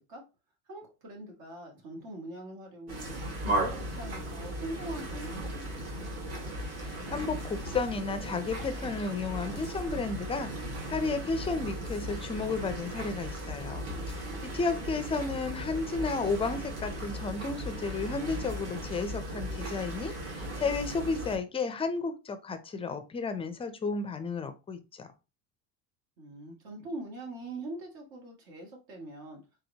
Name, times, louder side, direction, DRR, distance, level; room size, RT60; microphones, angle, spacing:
voice 1, 0.7-3.1 3.5-5.9 14.0-14.9 26.2-29.4, right 2 dB, 70° right, 2.0 m, -43 dB
sound 1, 2.9-21.4, right 1 dB, 45° right, 1.9 m, -37 dB
voice 2, 6.8-25.1, left 4 dB, 15° left, 0.4 m, -33 dB
4.3 x 3.8 x 2.8 m
cardioid pair, 150°, 35 cm